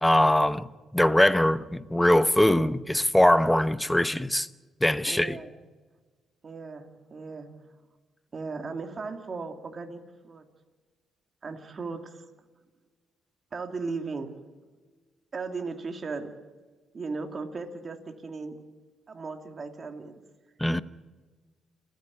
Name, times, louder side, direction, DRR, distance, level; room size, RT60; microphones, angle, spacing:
voice 1, 0.0-4.5 4.8-5.4 20.6-20.8, left 1 dB, 5° left, 0.9 m, -22 dB
voice 2, 5.1-5.5 6.4-7.5 8.3-10.4 11.4-12.2 13.5-14.4 15.3-16.3 16.9-18.0 18.2-18.6 19.1-20.1, right 4 dB, 40° right, 2.7 m, -36 dB
29.0 x 10.5 x 9.8 m
cardioid pair, 90°, 0 cm